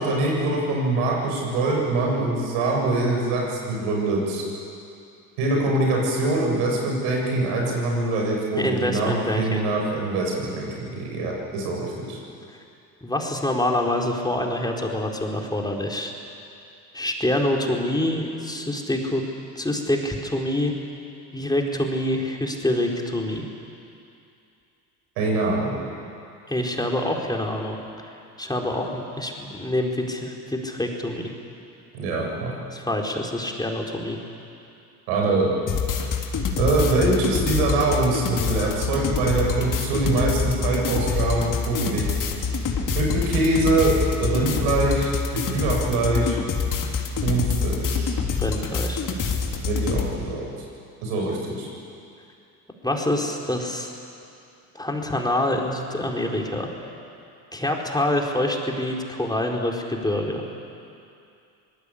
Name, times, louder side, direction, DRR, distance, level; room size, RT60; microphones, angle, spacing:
voice 1, 0.0-4.4 5.4-12.2 25.2-25.8 31.9-32.5 35.1-35.5 36.6-42.2 43.0-46.4 47.2-48.1 49.6-50.5 51.0-51.7, right 2 dB, 70° right, -1 dB, 7.5 m, -24 dB
voice 2, 8.6-9.7 13.0-16.1 16.9-19.2 19.6-20.7 21.3-23.5 26.5-27.8 28.0-28.1 28.4-31.3 32.7-34.2 48.4-49.0 52.8-53.9 54.7-56.7 57.5-60.4, left 1 dB, 10° left, 0 dB, 4.2 m, -26 dB
sound 1, 35.7-50.1, left 5 dB, 40° left, 3.4 m, -26 dB
25.0 x 20.0 x 8.6 m, 2.6 s
hypercardioid pair, 65°, 47 cm